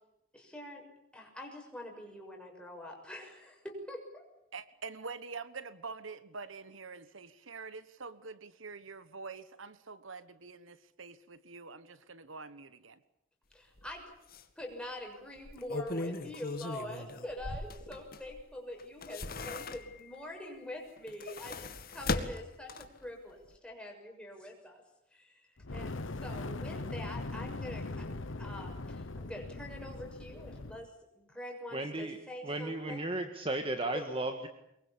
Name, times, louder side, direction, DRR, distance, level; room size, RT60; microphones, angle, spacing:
voice 1, 0.3-0.8 1.1-4.2 13.5-14.0 14.6-24.8 25.1-25.4 25.7-30.9 31.1-33.0 33.9-34.1, left 1 dB, 5° left, 6.6 m, -45 dB
voice 2, 4.5-13.0, right 4 dB, 85° right, 1.3 m, -46 dB
sound 1, 13.8-13.9 14.3-14.4 15.4-18.4 18.8-20.1 21.0-23.1 23.5-23.6, left 2 dB, 50° left, 2.1 m, -38 dB
Fire, 25.6-30.9, left 2 dB, 80° left, 1.1 m, -40 dB
voice 3, 31.7-32.2 32.4-34.5, right 2 dB, 30° right, 1.7 m, -35 dB
24.0 x 22.5 x 8.6 m
head